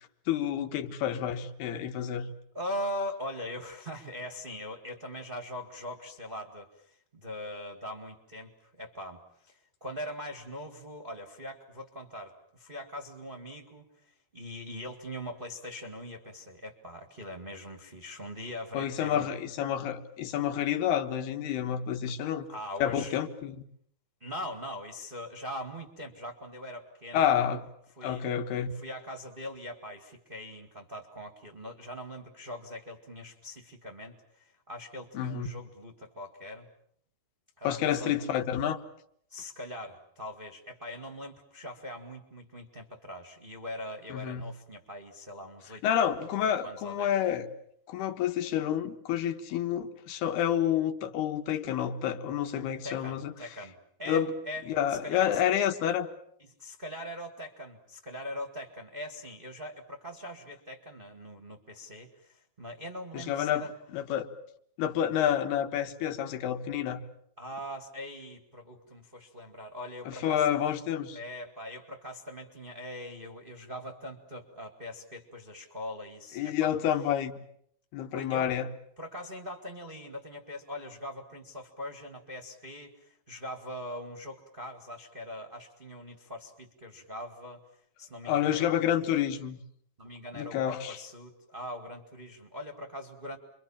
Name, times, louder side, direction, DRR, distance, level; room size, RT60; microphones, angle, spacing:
voice 1, 0.3-2.3 18.7-22.5 22.8-23.6 27.1-27.7 28.0-28.7 35.2-35.5 37.7-38.8 44.1-44.5 45.8-47.5 47.9-53.3 54.1-54.3 54.7-56.1 63.1-63.6 63.9-64.3 64.8-67.0 70.1-71.2 76.4-77.4 77.9-78.7 88.3-89.6 90.4-91.0, left 10 dB, 85° left, 7 dB, 3.5 m, -29 dB
voice 2, 2.5-19.3 22.1-22.2 22.5-23.2 24.2-27.3 27.9-28.3 28.7-36.7 37.6-38.2 39.3-45.8 46.6-47.2 52.8-55.4 56.4-63.7 67.4-70.5 71.1-76.7 78.1-78.5 79.0-87.6 88.0-88.9 90.0-93.4, left 1 dB, 20° right, 3 dB, 1.3 m, -41 dB
29.0 x 24.0 x 7.3 m, 0.68 s
omnidirectional pair, 4.4 m